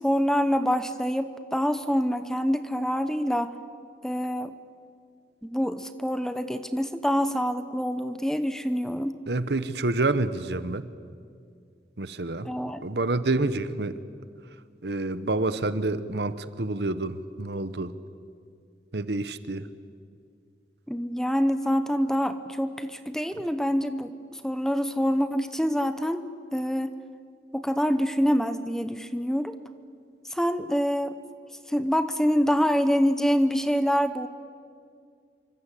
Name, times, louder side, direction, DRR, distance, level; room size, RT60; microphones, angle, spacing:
voice 1, 0.0-3.5 4.0-4.6 5.4-9.2 12.4-12.8 20.9-26.2 26.5-27.0 27.5-29.6 30.3-31.2 31.7-34.3, equal, 5° left, 11 dB, 0.9 m, -26 dB
voice 2, 9.3-10.8 12.0-12.5 12.8-14.0 14.8-17.9 18.9-19.7, right 2 dB, 70° right, 13 dB, 1.1 m, -28 dB
27.5 x 24.5 x 8.5 m, 2.2 s
head